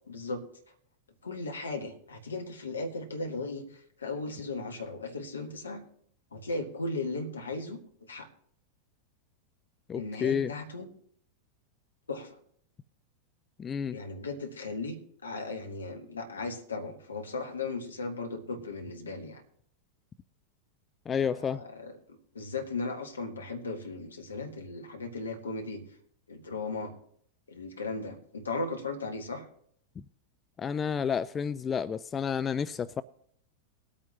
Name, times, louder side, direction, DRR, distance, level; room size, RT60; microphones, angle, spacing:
voice 1, 0.1-0.4 1.2-5.8 6.3-7.8 8.1-8.3 9.9-10.9 12.1-12.4 13.9-15.0 15.2-19.4 21.2-25.8 26.3-26.9 27.5-29.4, left 3 dB, 75° left, 1.5 m, -37 dB
voice 2, 9.9-10.5 13.6-14.0 21.1-21.6 30.6-33.0, left 7 dB, 20° left, 0.3 m, -30 dB
21.0 x 8.6 x 2.8 m
figure-of-eight pair, 90°, 0 cm